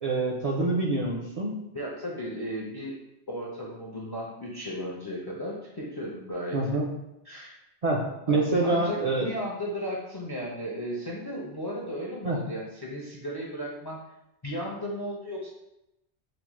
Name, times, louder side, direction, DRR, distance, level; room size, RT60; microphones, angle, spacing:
voice 1, 0.0-1.6 6.5-6.9 7.8-9.3 12.2-12.4, right 2 dB, 50° right, -4 dB, 0.4 m, -26 dB
voice 2, 1.7-3.0 3.3-6.6 7.3-7.6 8.3-14.0 14.4-15.5, equal, 35° left, -3 dB, 0.4 m, -35 dB
5.0 x 2.0 x 3.0 m, 0.87 s
omnidirectional pair, 1.1 m